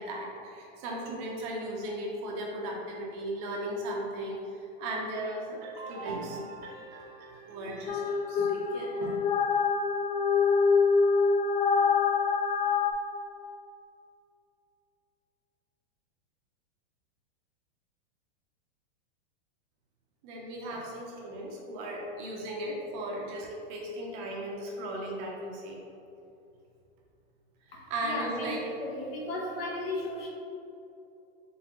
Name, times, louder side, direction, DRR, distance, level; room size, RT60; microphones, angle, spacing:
voice 1, 0.0-9.2 20.2-25.8 27.7-28.6, right 1 dB, 25° right, -2 dB, 0.5 m, -37 dB
sound 1, 7.9-12.9, left 5 dB, 55° left, 0.4 m, -25 dB
voice 2, 27.7-30.3, left 1 dB, 70° left, -1 dB, 1.0 m, -36 dB
4.2 x 3.5 x 2.8 m, 2.6 s
supercardioid pair, 160°, 30 cm